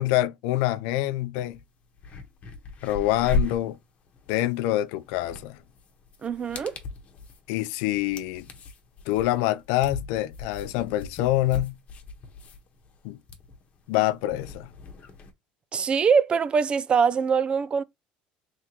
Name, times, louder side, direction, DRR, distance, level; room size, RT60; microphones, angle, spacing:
voice 1, 0.0-1.6 2.8-3.8 4.3-5.6 7.5-8.5 9.1-11.8 13.0-13.2 13.9-14.7, left 15 dB, 80° left, 0.5 m, -26 dB
sound 1, 1.5-1.6 1.9-15.3, left 3 dB, 40° left, 1.2 m, -37 dB
voice 2, 6.2-6.8 15.7-17.8, right 6 dB, 30° right, 0.4 m, -23 dB
3.6 x 3.5 x 2.9 m
cardioid pair, 120°, 3 cm